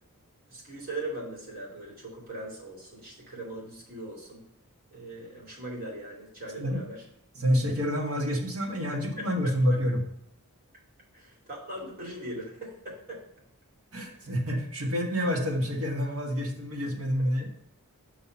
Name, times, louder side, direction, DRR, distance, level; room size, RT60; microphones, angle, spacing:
voice 1, 0.5-4.4 4.9-7.0 8.9-9.3 11.1-13.2 14.1-14.3, right 1 dB, 40° right, -4 dB, 2.5 m, -40 dB
voice 2, 7.4-10.0 13.9-17.5, equal, 65° right, 0 dB, 1.7 m, -28 dB
5.9 x 4.3 x 5.7 m, 0.70 s
head